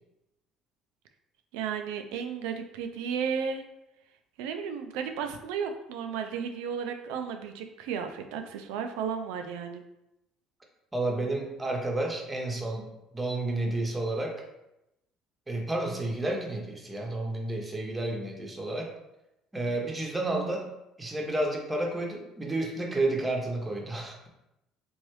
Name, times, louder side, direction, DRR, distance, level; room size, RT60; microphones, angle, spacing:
voice 1, 1.5-3.6 4.4-9.8, right 7 dB, 80° right, 6 dB, 0.3 m, -34 dB
voice 2, 10.9-12.9 13.1-14.4 15.5-18.9 19.5-20.7 21.0-24.3, right 2 dB, 20° right, 0 dB, 0.8 m, -31 dB
3.1 x 2.6 x 3.1 m, 0.89 s
hypercardioid pair, 65°, 0 cm